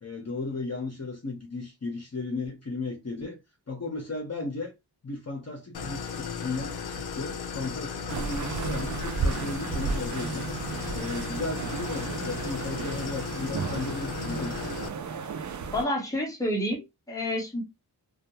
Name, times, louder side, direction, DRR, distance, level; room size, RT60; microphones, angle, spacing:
voice 1, 0.0-3.4 3.7-4.7 5.0-10.5 10.9-14.7, left 3 dB, 40° left, 0.8 m, -35 dB
Idling, 5.7-14.9, left 5 dB, 70° left, 0.6 m, -35 dB
sound 1, 8.1-15.9, right 5 dB, 50° right, 0.4 m, -33 dB
voice 2, 15.7-17.6, left 1 dB, 10° left, 0.9 m, -29 dB
2.3 x 2.1 x 2.8 m
cardioid pair, 50°, 41 cm